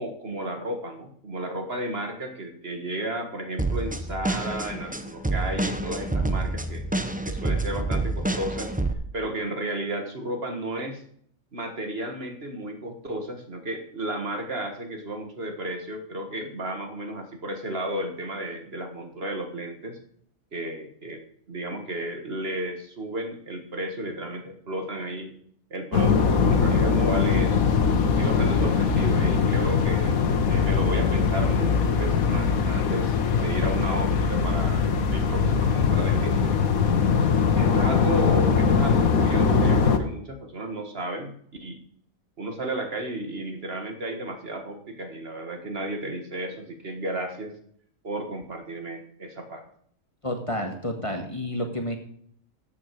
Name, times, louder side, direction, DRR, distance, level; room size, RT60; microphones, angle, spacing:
voice 1, 0.0-6.8 7.3-8.8 9.1-11.0 11.5-20.0 20.5-21.2 21.5-25.4 25.7-27.7 28.0-30.1 30.5-36.9 37.6-41.3 41.6-41.8 42.4-47.6 48.0-49.7, right 1 dB, 45° right, 5 dB, 1.7 m, -33 dB
sound 1, 3.6-8.9, right 2 dB, 10° right, 0.5 m, -28 dB
sound 2, 25.9-40.0, left 5 dB, 90° left, 1.6 m, -21 dB
voice 2, 50.2-52.0, left 1 dB, 25° left, 3 dB, 1.5 m, -30 dB
13.5 x 7.9 x 4.6 m, 0.64 s
omnidirectional pair, 1.4 m